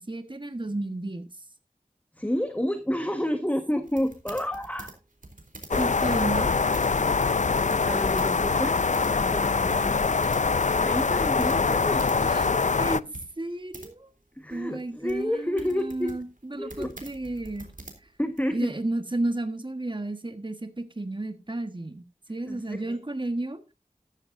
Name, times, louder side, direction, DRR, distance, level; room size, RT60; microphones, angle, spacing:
voice 1, 0.0-1.4 5.8-6.5 12.2-14.1 14.5-17.7 18.0-18.1 18.5-22.0 22.3-23.6, right 2 dB, 35° right, 9 dB, 1.4 m, -32 dB
voice 2, 2.1-4.9 5.7-5.9 6.3-6.5 7.0-7.2 7.9-10.1 10.7-12.2 14.4-16.1 16.6-16.9 18.2-18.7 22.5-23.0, equal, 10° left, 7 dB, 1.4 m, -30 dB
sound 1, 3.8-8.3 8.6-12.2 12.5-12.6 13.1-13.9 14.5-18.4, right 2 dB, 70° right, 3.4 m, -46 dB
sound 2, 5.7-13.0, left 4 dB, 60° left, 0.5 m, -24 dB
14.0 x 12.5 x 2.6 m, 0.26 s
wide cardioid pair, 45°, 14 cm